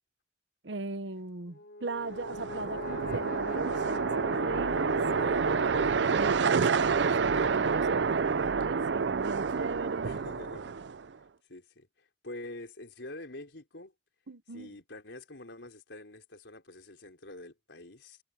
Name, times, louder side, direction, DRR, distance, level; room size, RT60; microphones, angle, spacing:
voice 1, 0.6-5.0 6.1-10.2 14.3-14.7, right 3 dB, 90° right, 1.1 m, -39 dB
Brass instrument, 1.5-6.5, left 2 dB, 60° left, 3.5 m, -40 dB
sound 1, 2.1-11.1, right 5 dB, 70° right, 0.5 m, -28 dB
voice 2, 5.0-5.5 10.0-10.7 11.5-13.9 14.5-18.2, left 2 dB, 85° left, 4.0 m, -46 dB
head